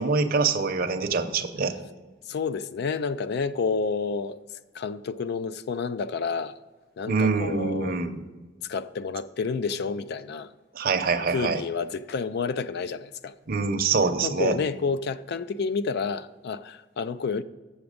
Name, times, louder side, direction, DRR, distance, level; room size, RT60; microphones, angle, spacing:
voice 1, 0.0-1.7 7.1-8.2 10.8-11.6 13.5-14.6, right 4 dB, 50° right, 0.7 m, -25 dB
voice 2, 2.3-4.4 4.7-6.6 7.0-8.0 8.7-10.5 11.3-13.4 14.2-17.4, left 5 dB, 60° left, 0.4 m, -29 dB
7.2 x 7.0 x 5.1 m
head